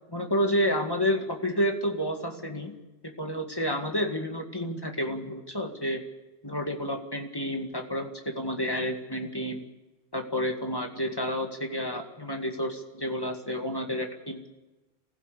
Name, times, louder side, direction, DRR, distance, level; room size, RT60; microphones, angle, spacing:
voice 1, 0.1-2.7 3.0-6.0 6.4-9.6 10.1-14.6, equal, 20° left, 3 dB, 2.2 m, -30 dB
24.5 x 16.0 x 8.5 m, 1.1 s
omnidirectional pair, 1.1 m